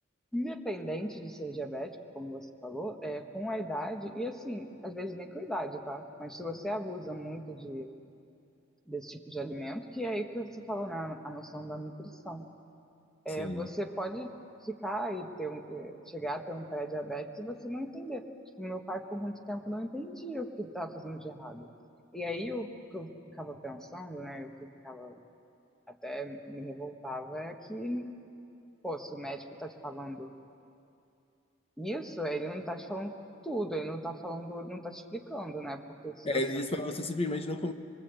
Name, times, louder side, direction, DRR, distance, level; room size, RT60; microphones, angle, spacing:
voice 1, 0.3-7.9 8.9-12.5 13.2-14.4 14.6-18.2 18.6-21.7 22.1-25.2 25.9-28.1 28.8-30.3 31.8-33.1 33.4-36.6, equal, 5° left, 4 dB, 1.4 m, -37 dB
voice 2, 13.4-13.7 36.2-37.7, left 2 dB, 30° left, 7 dB, 1.1 m, -32 dB
25.0 x 25.0 x 8.2 m, 2.7 s
head